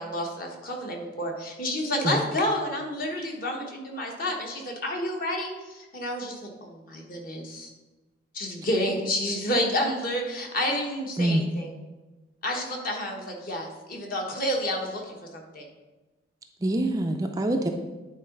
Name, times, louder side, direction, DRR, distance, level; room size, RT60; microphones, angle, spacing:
voice 1, 0.0-7.7 8.3-11.7 12.4-15.7, left 1 dB, 45° left, 1 dB, 1.3 m, -30 dB
voice 2, 16.6-17.7, right 1 dB, 15° right, 4 dB, 0.4 m, -25 dB
9.8 x 4.0 x 5.2 m, 1.2 s
head